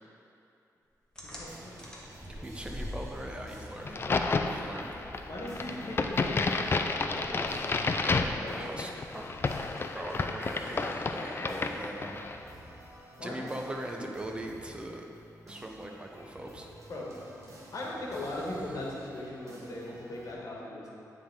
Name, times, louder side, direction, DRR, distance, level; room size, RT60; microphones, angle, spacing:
voice 1, 1.2-1.8 5.2-8.7 13.2-13.5 16.9-17.1 17.7-20.9, left 1 dB, 60° left, -4 dB, 1.5 m, -39 dB
sound 1, 1.2-8.3, left 1 dB, 10° left, 1.2 m, -46 dB
sound 2, 1.3-20.3, right 1 dB, 50° right, 1.4 m, -52 dB
voice 2, 2.3-4.0 4.5-4.9 8.2-9.3 9.9-12.2 13.2-15.1 15.5-16.7, right 1 dB, 15° right, 1 dB, 0.7 m, -40 dB
Crack, 3.8-12.4, left 3 dB, 35° left, 0.3 m, -31 dB
9.8 x 3.6 x 3.6 m, 2.8 s
cardioid pair, 90°, 7 cm